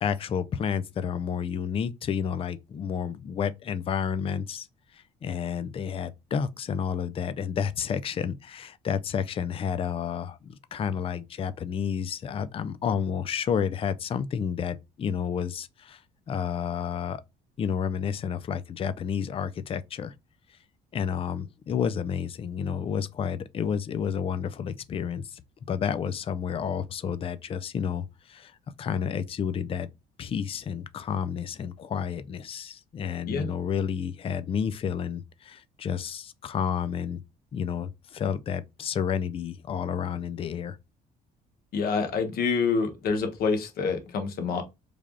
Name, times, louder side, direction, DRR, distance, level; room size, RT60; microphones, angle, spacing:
voice 1, 0.0-4.7 4.9-16.0 16.3-17.2 17.6-20.1 20.9-25.4 25.7-29.9 30.2-37.2 37.5-40.8, left 7 dB, 35° left, 0.4 m, -30 dB
voice 2, 41.7-44.6, left 5 dB, 65° left, 1.0 m, -27 dB
3.3 x 2.4 x 3.6 m
cardioid pair, 110°, 17 cm